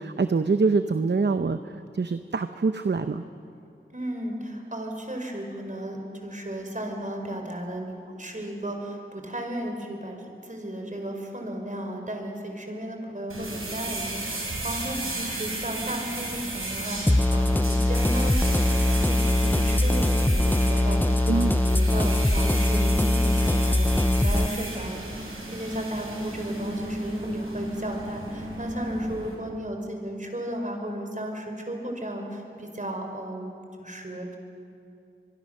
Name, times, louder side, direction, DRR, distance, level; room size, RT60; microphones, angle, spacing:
voice 1, 0.0-3.2 21.3-21.6, right 4 dB, 55° right, 10 dB, 0.8 m, -25 dB
voice 2, 3.9-10.2 10.4-34.4, right 1 dB, 35° right, 3 dB, 4.6 m, -34 dB
sound 1, 13.3-29.3, right 1 dB, 85° right, 4.9 m, -34 dB
sound 2, 17.1-24.5, left 1 dB, 10° left, 0.5 m, -22 dB
24.5 x 23.0 x 6.6 m, 2.5 s
wide cardioid pair, 45°, 21 cm